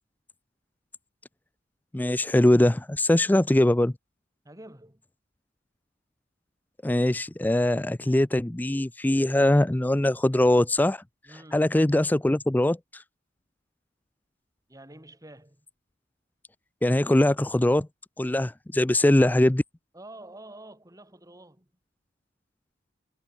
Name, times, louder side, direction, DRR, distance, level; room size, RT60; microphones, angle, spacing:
voice 1, 1.9-3.9 6.8-11.0 11.5-12.8 16.8-17.9 18.2-19.6, left 1 dB, 10° left, 0.4 m, -22 dB
voice 2, 4.4-5.0 11.3-11.8 14.7-15.7 19.9-21.7, right 1 dB, 15° right, 3.9 m, -47 dB
head